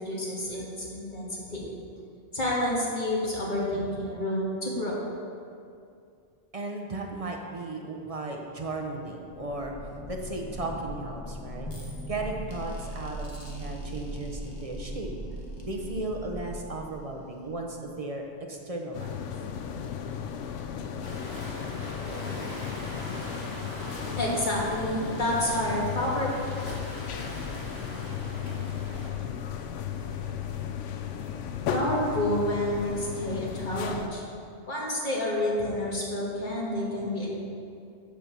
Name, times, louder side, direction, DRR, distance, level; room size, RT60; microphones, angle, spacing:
voice 1, 0.0-1.6 2.3-5.0 24.2-27.0 31.7-34.2 34.7-37.3, left 1 dB, 40° left, -5 dB, 1.8 m, -29 dB
voice 2, 6.5-9.7 10.1-15.1 15.6-19.3, right 2 dB, 35° right, 1 dB, 0.7 m, -35 dB
sound 1, 9.2-17.7, equal, 25° left, 1.0 m, -39 dB
sound 2, 18.9-34.1, left 8 dB, 85° left, 0.9 m, -35 dB
sound 3, 21.0-29.1, left 1 dB, 60° left, 1.6 m, -40 dB
8.3 x 4.4 x 6.7 m, 2.4 s
omnidirectional pair, 1.2 m